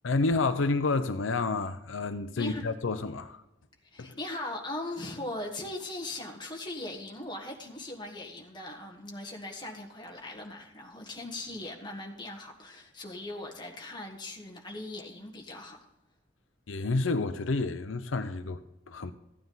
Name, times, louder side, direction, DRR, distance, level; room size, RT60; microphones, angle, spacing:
voice 1, 0.0-3.4 4.0-4.2 16.7-19.1, left 3 dB, 85° left, 0.6 m, -29 dB
voice 2, 2.4-2.7 3.8-15.8, left 2 dB, 25° left, 1.6 m, -39 dB
14.5 x 9.3 x 4.0 m
head